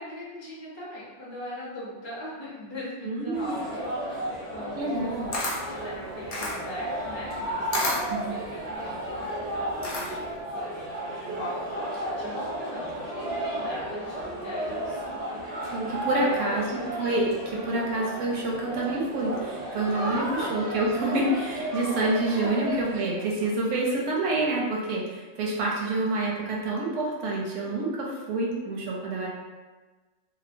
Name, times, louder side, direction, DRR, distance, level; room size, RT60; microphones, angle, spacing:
voice 1, 0.0-9.2 9.5-15.6 16.1-16.9 19.9-20.5 21.8-22.0 22.3-22.6, equal, 30° left, -6 dB, 0.6 m, -39 dB
voice 2, 3.0-3.5 4.8-5.3 8.1-8.3 15.7-20.2 20.5-29.3, right 2 dB, 85° right, -3 dB, 1.0 m, -27 dB
sound 1, 3.3-23.0, right 1 dB, 45° right, 0.5 m, -34 dB
Camera, 4.9-10.4, left 2 dB, 60° left, 0.8 m, -32 dB
2.8 x 2.1 x 2.5 m, 1.3 s
omnidirectional pair, 1.3 m